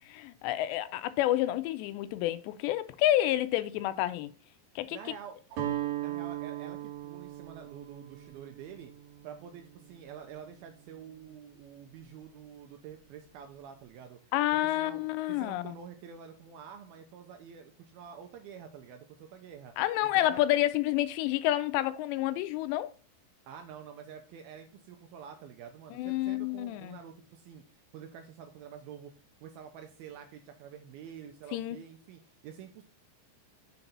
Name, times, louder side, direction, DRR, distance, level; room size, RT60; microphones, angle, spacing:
voice 1, 0.1-4.3 4.8-5.0 14.3-15.8 19.8-22.9 25.9-27.0 31.5-31.8, left 14 dB, 85° left, 2.8 m, -29 dB
voice 2, 4.9-5.4 5.8-8.9 9.2-14.3 14.6-15.0 15.3-19.7 20.2-20.4 23.5-29.1 29.4-32.8, right 8 dB, 80° right, 2.2 m, -48 dB
Guitar, 5.5-11.6, right 13 dB, 60° right, 2.8 m, -39 dB
6.6 x 4.0 x 5.9 m
omnidirectional pair, 4.9 m